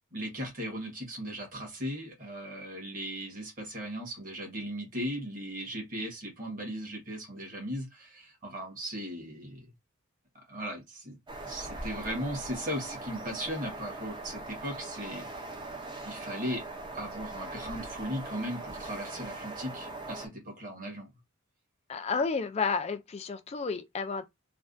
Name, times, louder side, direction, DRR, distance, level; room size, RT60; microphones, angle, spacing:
voice 1, 0.1-9.7 10.3-11.2 11.5-15.3 16.0-16.6 16.9-21.1, equal, 40° right, 1.4 m, -37 dB
sound 1, 11.3-20.3, right 2 dB, 20° right, 0.5 m, -41 dB
voice 2, 21.9-24.2, left 5 dB, 30° left, 0.3 m, -31 dB
3.2 x 2.2 x 2.5 m
head